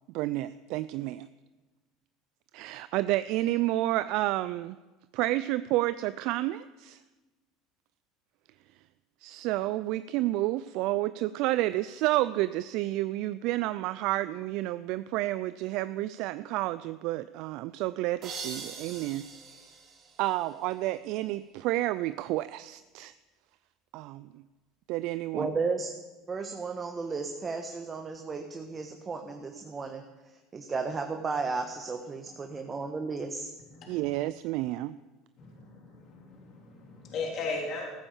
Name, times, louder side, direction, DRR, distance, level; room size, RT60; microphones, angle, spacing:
voice 1, 0.1-1.3 2.5-4.8 5.1-7.0 9.2-19.3 19.5-19.6 20.2-23.1 23.9-24.4 24.9-25.5 33.9-35.0, right 16 dB, 65° right, 15 dB, 0.4 m, -30 dB
sound 1, 18.2-20.9, right 5 dB, 50° right, 3.1 m, -43 dB
voice 2, 25.3-25.9 26.3-30.0 30.5-33.5, right 4 dB, 30° right, 5 dB, 1.3 m, -34 dB
voice 3, 33.7-34.1 35.4-37.9, left 3 dB, 55° left, -1 dB, 3.2 m, -37 dB
14.5 x 9.0 x 7.2 m, 1.2 s
hypercardioid pair, 85°, 0 cm